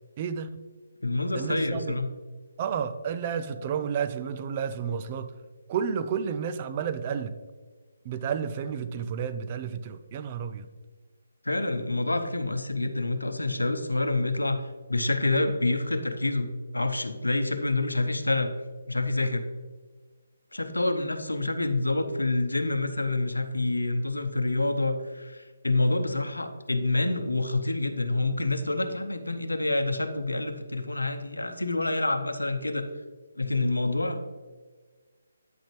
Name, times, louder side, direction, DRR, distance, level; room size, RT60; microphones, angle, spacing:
voice 1, 0.2-0.6 1.3-2.0 2.6-5.3 5.7-7.4 8.0-10.7, right 7 dB, 30° right, 11 dB, 0.5 m, -31 dB
voice 2, 1.0-2.1 11.4-18.5 18.9-19.4 20.5-32.9 33.4-34.3, left 2 dB, 90° left, 8 dB, 0.8 m, -27 dB
9.1 x 6.4 x 3.2 m, 1.4 s
figure-of-eight pair, 145°, 0 cm